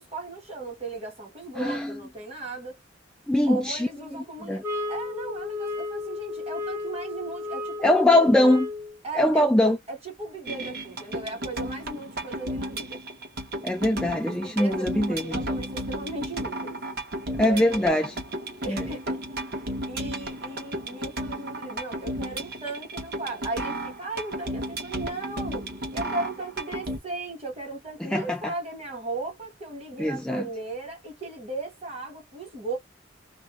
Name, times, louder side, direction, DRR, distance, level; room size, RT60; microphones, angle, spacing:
voice 1, 0.0-2.8 3.5-4.6 4.9-8.3 9.0-9.5 9.9-13.0 14.3-16.8 17.4-18.0 18.6-32.8, right 3 dB, 30° right, 1.3 m, -36 dB
voice 2, 1.6-2.0 3.3-3.9 4.4-4.6 7.8-8.7 9.2-9.8 13.6-15.4 17.4-18.1 18.7-18.8 28.1-28.5 30.0-30.4, left 1 dB, 5° left, 0.3 m, -22 dB
sound 1, 4.6-9.0, left 3 dB, 15° right, 0.8 m, -33 dB
sound 2, 10.5-27.0, right 1 dB, 55° right, 0.9 m, -34 dB
2.5 x 2.1 x 3.0 m
head